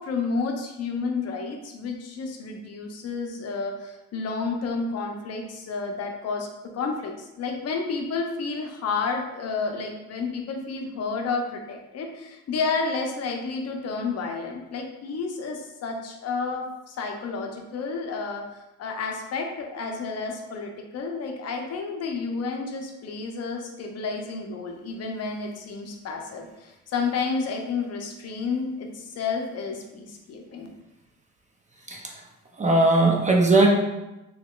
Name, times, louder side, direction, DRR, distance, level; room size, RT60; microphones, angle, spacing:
voice 1, 0.0-6.5 6.7-18.4 18.8-30.7, left 4 dB, 55° left, 2 dB, 0.6 m, -31 dB
voice 2, 32.6-33.7, right 2 dB, 25° right, 0 dB, 0.5 m, -19 dB
3.5 x 3.0 x 2.3 m, 0.98 s
cardioid pair, 90°, 30 cm